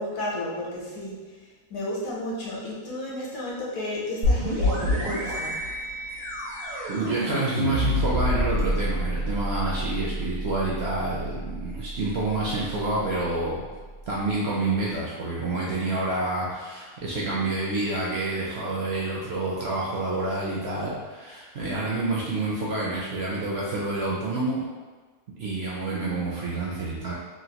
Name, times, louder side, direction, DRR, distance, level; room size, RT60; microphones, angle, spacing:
voice 1, 0.0-5.6, left 1 dB, 70° left, -5 dB, 1.1 m, -32 dB
sound 1, 4.2-13.8, equal, 90° right, 1.4 m, -28 dB
voice 2, 6.9-13.7 14.1-24.6 25.4-27.1, right 2 dB, 70° right, -5 dB, 0.6 m, -28 dB
3.1 x 2.4 x 2.8 m, 1.4 s
omnidirectional pair, 1.6 m